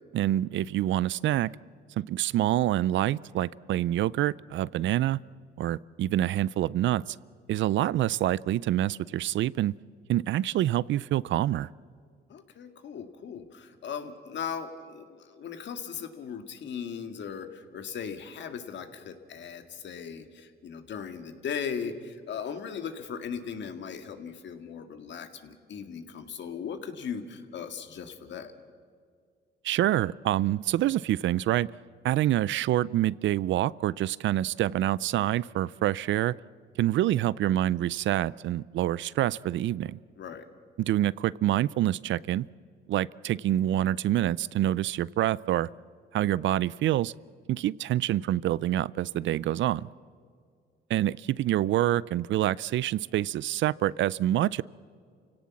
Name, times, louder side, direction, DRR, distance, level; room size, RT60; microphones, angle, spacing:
voice 1, 0.1-1.5 2.0-5.2 5.6-7.0 7.5-9.7 10.1-11.7 29.6-31.7 32.0-36.3 36.8-40.0 40.8-42.5 42.9-45.7 46.1-47.1 47.5-49.9 50.9-54.6, right 13 dB, 70° right, 22 dB, 0.5 m, -26 dB
voice 2, 12.3-28.5 40.2-40.5, left 7 dB, 65° left, 7 dB, 2.0 m, -38 dB
29.0 x 17.5 x 7.3 m, 2.2 s
cardioid pair, 90°, 20 cm